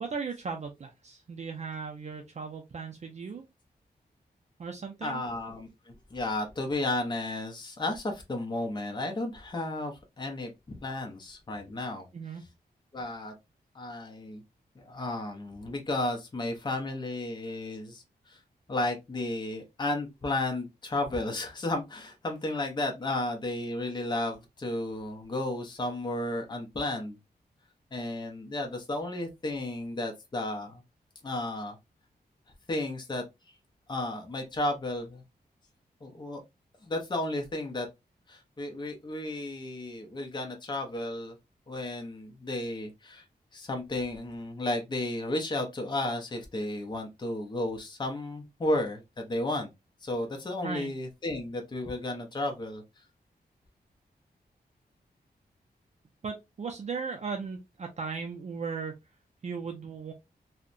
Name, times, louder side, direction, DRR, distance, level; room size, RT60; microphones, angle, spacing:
voice 1, 0.0-3.4 4.6-5.2 12.1-12.4 50.6-50.9 56.2-58.9 59.4-60.1, right 5 dB, 45° right, 0.4 m, -37 dB
voice 2, 5.0-12.1 12.9-13.3 13.7-14.4 14.8-18.4 18.7-27.2 27.9-30.8 31.2-31.8 32.7-33.2 33.9-35.2 36.0-36.4 36.8-37.9 38.3-41.4 41.7-43.2 43.5-49.7 50.0-52.8, left 2 dB, 25° left, 0.6 m, -33 dB
2.7 x 2.1 x 2.4 m
wide cardioid pair, 165°, 17 cm